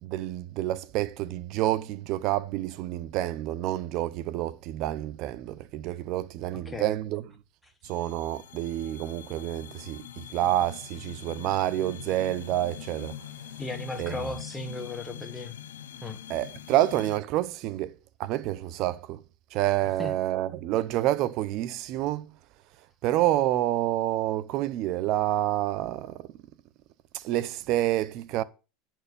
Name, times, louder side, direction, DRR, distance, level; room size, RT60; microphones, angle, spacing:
voice 1, 0.0-7.2 7.8-13.2 14.0-14.2 16.3-19.2 19.5-22.3 23.0-26.3 27.1-28.4, right 14 dB, 55° right, 0.8 m, -28 dB
voice 2, 6.6-7.0 13.6-15.6 16.0-16.2 20.0-20.1, left 2 dB, 10° left, 1.7 m, -36 dB
sound 1, 7.8-17.2, left 11 dB, 90° left, 0.9 m, -43 dB
10.0 x 4.6 x 6.8 m
supercardioid pair, 110°, 0 cm